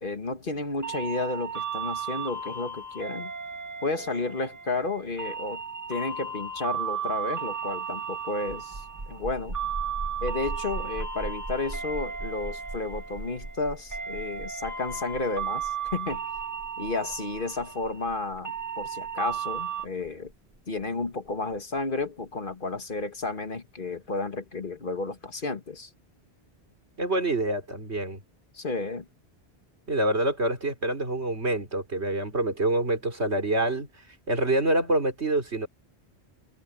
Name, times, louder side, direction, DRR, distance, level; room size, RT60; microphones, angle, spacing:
voice 1, 0.0-3.3 3.8-5.6 5.9-9.6 10.2-16.2 16.8-20.3 20.7-25.9 28.5-29.1, left 3 dB, 50° left, 1.8 m, -32 dB
sound 1, 0.8-19.9, right 7 dB, 15° right, 1.7 m, -35 dB
sound 2, 8.4-21.8, right 2 dB, 45° right, 2.5 m, -40 dB
voice 2, 27.0-28.2 29.9-33.9 34.3-35.7, right 1 dB, 85° right, 4.0 m, -26 dB
omnidirectional pair, 1.1 m